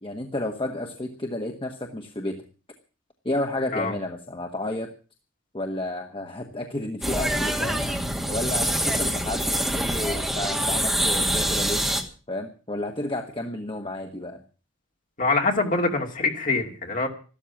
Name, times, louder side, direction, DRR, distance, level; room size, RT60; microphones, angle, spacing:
voice 1, 0.0-2.4 3.2-4.9 5.5-7.8 8.3-11.8 12.3-14.4, left 1 dB, 25° left, 4 dB, 1.3 m, -31 dB
sound 1, 7.0-12.0, right 1 dB, ahead, 2.1 m, -25 dB
voice 2, 15.2-17.1, left 3 dB, 40° left, 2 dB, 2.8 m, -24 dB
14.0 x 12.5 x 7.2 m, 0.38 s
head